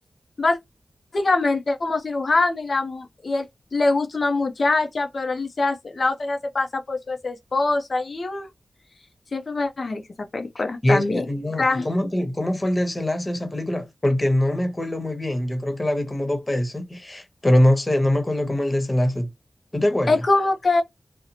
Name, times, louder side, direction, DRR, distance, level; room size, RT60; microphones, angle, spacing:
voice 1, 1.1-3.5 3.7-8.5 9.3-10.0 10.3-11.2 11.6-11.9 20.1-20.8, left 3 dB, 60° left, 0.5 m, -23 dB
voice 2, 10.8-19.3 19.7-20.2, left 1 dB, 30° left, 0.9 m, -23 dB
2.8 x 2.0 x 2.7 m
cardioid pair, 50°, 0 cm